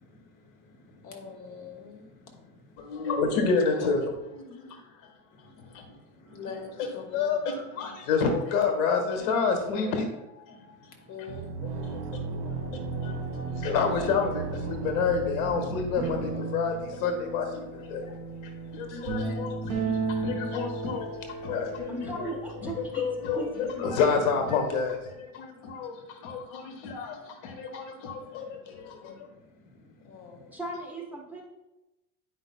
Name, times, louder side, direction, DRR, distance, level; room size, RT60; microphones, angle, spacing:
voice 1, 1.0-2.0 3.6-3.9 6.3-7.3 11.1-12.0 19.2-19.4 30.0-30.4, left 5 dB, 50° left, 1 dB, 1.6 m, -43 dB
voice 2, 2.8-5.1 5.7-5.8 6.2-6.4 7.1-10.7 11.8-18.1 18.4-22.3 22.6-29.3, left 5 dB, 85° left, 4 dB, 1.5 m, -29 dB
sound 1, 11.3-16.3, right 4 dB, 70° right, 1.0 m, -34 dB
sound 2, 15.9-25.0, right 4 dB, 55° right, 1.7 m, -35 dB
voice 3, 21.9-23.0 23.3-23.5 30.5-31.4, right 2 dB, 5° right, -3 dB, 1.1 m, -37 dB
9.8 x 5.2 x 2.2 m, 0.98 s
supercardioid pair, 135°, 40 cm